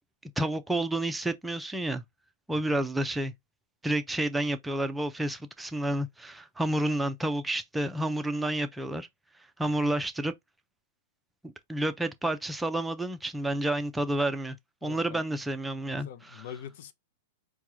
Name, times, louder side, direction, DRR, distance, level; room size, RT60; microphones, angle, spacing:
voice 1, 0.4-2.0 2.5-3.3 3.8-9.1 9.6-10.3 11.4-14.6 14.8-16.4, right 1 dB, 5° right, 0.6 m, -30 dB
voice 2, 2.5-2.9 14.8-15.2 16.0-16.9, left 9 dB, 60° left, 0.6 m, -44 dB
4.6 x 2.3 x 2.8 m
hypercardioid pair, 120°, 0 cm